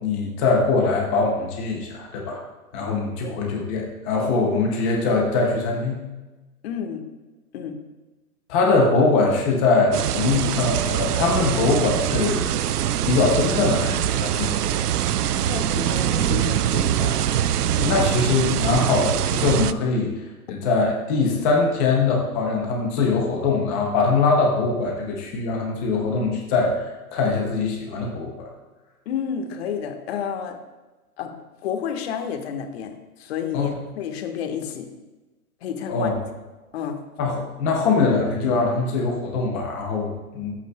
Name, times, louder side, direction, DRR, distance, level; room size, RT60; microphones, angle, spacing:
voice 1, 0.0-2.4 2.7-6.0 8.5-12.6 13.1-14.8 17.8-20.1 20.5-28.3 33.5-33.7 35.9-36.1 37.2-40.5, left 3 dB, 10° left, 0 dB, 0.4 m, -22 dB
voice 2, 6.6-7.0 7.5-7.8 15.3-18.0 18.7-19.0 20.5-20.6 29.0-30.6 31.2-31.3 31.6-34.9 35.6-36.1 36.7-37.0, left 7 dB, 45° left, 5 dB, 1.4 m, -31 dB
sound 1, 9.9-19.7, right 10 dB, 80° right, 0.6 m, -23 dB
21.5 x 8.2 x 2.2 m, 1.2 s
hypercardioid pair, 140°, 45 cm